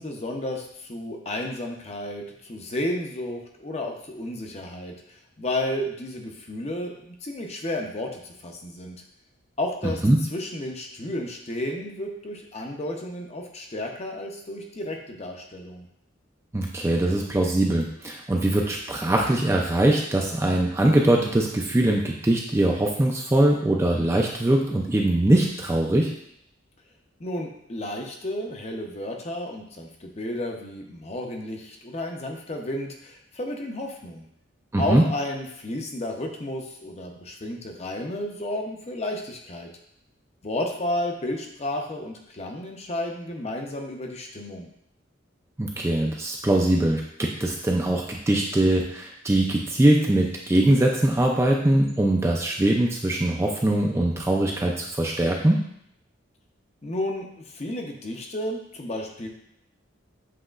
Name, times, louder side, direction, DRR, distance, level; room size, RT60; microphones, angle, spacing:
voice 1, 0.0-9.0 9.6-10.0 10.3-15.9 27.2-34.3 34.8-39.7 40.4-44.7 56.8-59.3, left 1 dB, 35° left, 2 dB, 0.6 m, -32 dB
voice 2, 9.8-10.2 16.5-26.1 34.7-35.0 45.6-55.6, right 1 dB, 15° right, 0 dB, 0.3 m, -22 dB
7.5 x 2.9 x 2.4 m, 0.73 s
head